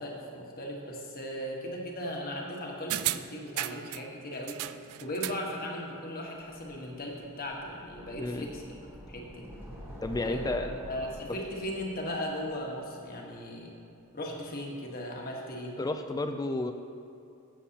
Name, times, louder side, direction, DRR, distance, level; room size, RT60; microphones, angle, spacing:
voice 1, 0.0-4.6 5.0-8.7 9.1-9.5 10.2-13.7 14.1-15.8, equal, 40° left, -1 dB, 1.4 m, -37 dB
sound 1, 2.9-4.0 4.5-5.5 5.8-5.9, right 14 dB, 75° right, 0.3 m, -34 dB
sound 2, 6.4-13.4, equal, 10° right, 1.3 m, -47 dB
voice 2, 8.2-8.5 10.0-10.7 15.8-16.7, left 2 dB, 15° left, 7 dB, 0.4 m, -31 dB
15.0 x 7.2 x 2.9 m, 2.7 s
head